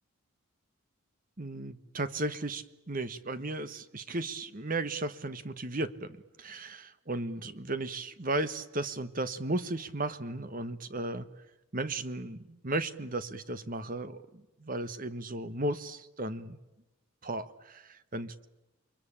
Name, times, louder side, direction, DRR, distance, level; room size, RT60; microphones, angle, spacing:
voice 1, 1.4-11.3 11.7-14.2 14.6-16.6 17.2-18.5, right 2 dB, 40° right, 12 dB, 1.3 m, -35 dB
29.0 x 23.0 x 8.8 m, 1.0 s
head